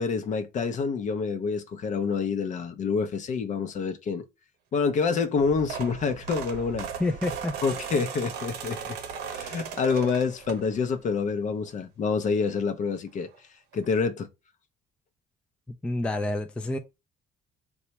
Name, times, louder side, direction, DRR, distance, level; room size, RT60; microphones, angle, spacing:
voice 1, 0.0-4.2 4.7-6.9 7.6-9.0 9.3-13.3 13.7-14.3, left 5 dB, 45° left, 0.6 m, -27 dB
sound 1, 5.3-11.0 11.4-11.7 12.9-13.0 13.3-13.4 13.7-13.9, right 7 dB, 75° right, 0.7 m, -37 dB
voice 2, 7.0-7.6 15.8-16.8, left 2 dB, 5° left, 0.3 m, -28 dB
2.9 x 2.3 x 4.2 m
cardioid pair, 110°, 17 cm